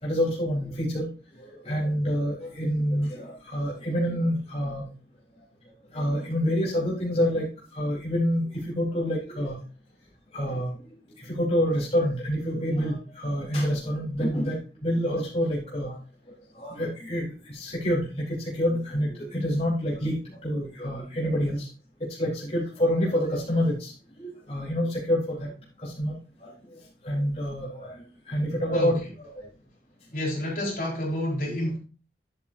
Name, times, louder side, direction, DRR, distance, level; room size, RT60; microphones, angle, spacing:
voice 1, 0.0-4.8 5.9-9.6 10.3-10.7 11.2-16.0 16.5-21.7 22.0-25.5 25.8-26.2 26.4-29.5, equal, 35° left, -6 dB, 4.1 m, -27 dB
voice 2, 30.1-31.8, left 1 dB, 50° left, -3 dB, 4.4 m, -29 dB
11.5 x 8.5 x 2.7 m, 0.35 s
head